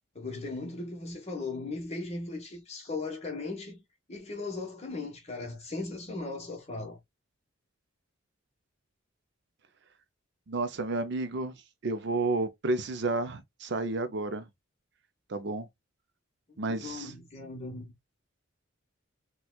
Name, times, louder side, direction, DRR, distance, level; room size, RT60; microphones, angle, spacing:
voice 1, 0.1-3.8 4.1-7.0 16.7-17.9, left 3 dB, 35° left, 1.1 m, -38 dB
voice 2, 10.5-11.6 11.8-14.5 15.3-15.7 16.6-17.1, right 2 dB, 60° right, 0.5 m, -31 dB
4.3 x 2.3 x 2.2 m
head